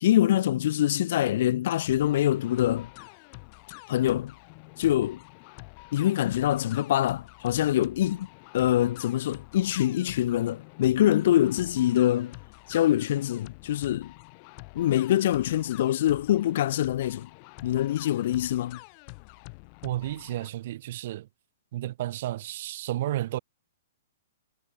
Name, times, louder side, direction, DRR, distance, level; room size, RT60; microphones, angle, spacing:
voice 1, 0.0-2.9 3.9-4.3 4.8-5.2 5.9-8.3 8.5-12.3 12.7-14.1 14.7-17.3 17.6-18.8, left 13 dB, 50° left, 0.5 m, -24 dB
sound 1, 1.9-20.5, left 37 dB, 30° left, 3.7 m, -47 dB
voice 2, 19.8-21.3 21.7-23.4, right 14 dB, 45° right, 1.5 m, -32 dB
hypercardioid pair, 170°, 0 cm